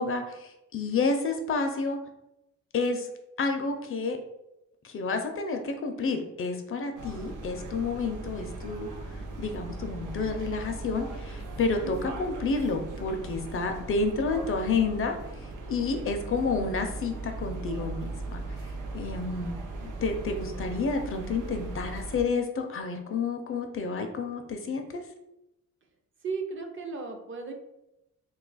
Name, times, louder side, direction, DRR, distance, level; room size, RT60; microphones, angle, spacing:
voice 1, 0.0-2.0 2.7-3.1 3.4-4.2 4.8-8.9 9.4-15.1 15.7-18.4 18.9-25.0, left 4 dB, 45° left, 5 dB, 0.4 m, -30 dB
sound 1, 7.0-22.2, right 2 dB, 90° right, 0.6 m, -38 dB
voice 2, 11.8-12.1 26.2-27.5, right 4 dB, 40° right, 3 dB, 0.5 m, -35 dB
2.8 x 2.3 x 3.8 m, 0.88 s
wide cardioid pair, 125°, 30 cm